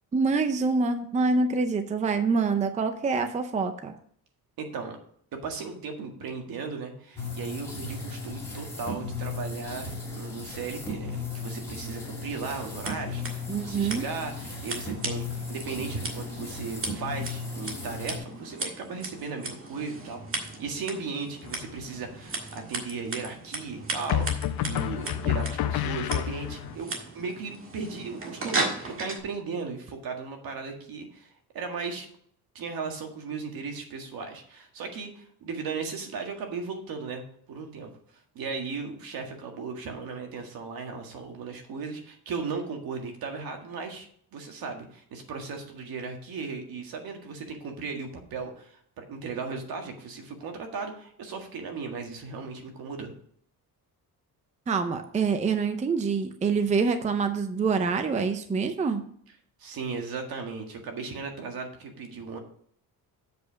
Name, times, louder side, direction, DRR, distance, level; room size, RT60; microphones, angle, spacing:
voice 1, 0.1-3.9 13.5-14.1 54.7-59.0, right 4 dB, 20° right, 8 dB, 0.5 m, -26 dB
voice 2, 4.6-5.0 5.4-26.9 27.1-32.1 32.6-37.2 37.5-37.9 38.4-53.1 59.6-62.4, right 4 dB, 70° right, 4 dB, 1.8 m, -36 dB
sound 1, 7.2-18.2, left 3 dB, 5° left, 2.3 m, -36 dB
Scissors, 12.7-29.2, right 3 dB, 35° right, 1.7 m, -37 dB
sound 2, 21.4-22.0 24.1-26.8, left 11 dB, 70° left, 0.7 m, -29 dB
8.0 x 5.1 x 6.2 m, 0.62 s
cardioid pair, 170°, 37 cm